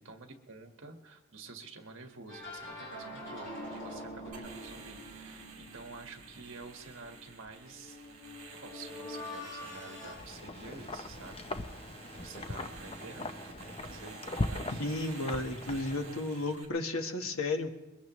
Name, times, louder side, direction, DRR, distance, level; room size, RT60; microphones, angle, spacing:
voice 1, 0.0-8.0 8.6-11.8 12.2-14.8, right 3 dB, 60° right, 4 dB, 1.6 m, -49 dB
sound 1, 2.3-10.1, left 1 dB, 55° left, 5.7 m, -45 dB
sound 2, 4.3-16.7, right 4 dB, 35° right, 3.2 m, -51 dB
Wind, 9.8-16.3, left 2 dB, 25° left, 0.7 m, -40 dB
voice 2, 14.7-17.7, left 2 dB, 80° left, 5 dB, 1.4 m, -33 dB
22.0 x 20.5 x 3.1 m, 1.1 s
head